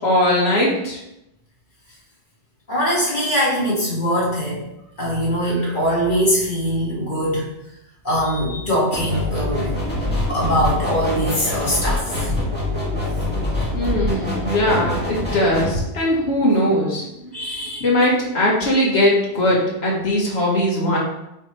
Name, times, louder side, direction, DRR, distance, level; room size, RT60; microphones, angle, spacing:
voice 1, 0.0-1.0 13.7-17.3 17.8-21.0, left 1 dB, 65° left, -4 dB, 1.8 m, -20 dB
voice 2, 2.7-4.6 5.0-7.5 8.0-9.8 10.3-12.3 13.8-13.9 17.3-17.9, equal, 45° left, -6 dB, 2.2 m, -22 dB
sound 1, 8.9-15.8, left 1 dB, 10° left, 1.6 m, -24 dB
8.3 x 3.5 x 3.3 m, 0.85 s
omnidirectional pair, 1.2 m